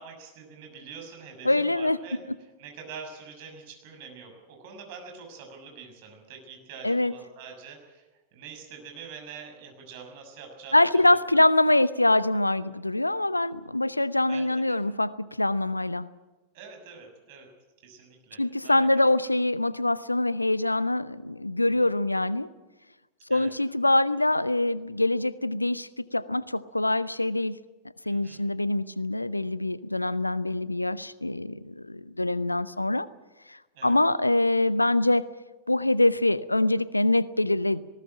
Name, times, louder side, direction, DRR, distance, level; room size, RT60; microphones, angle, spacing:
voice 1, 0.0-2.2 2.6-10.8 14.3-14.8 16.5-17.5 17.8-18.7 21.6-21.9 23.3-23.5 28.0-28.4 33.7-34.0, right 6 dB, 50° right, 3 dB, 6.5 m, -45 dB
voice 2, 1.4-2.0 6.8-7.1 10.7-16.1 18.4-22.5 23.3-27.6 28.1-33.1 33.5-35.3 35.7-37.8, left 2 dB, 85° left, 18 dB, 0.7 m, -24 dB
19.5 x 18.5 x 8.8 m, 1.2 s
figure-of-eight pair, 90°, 0 cm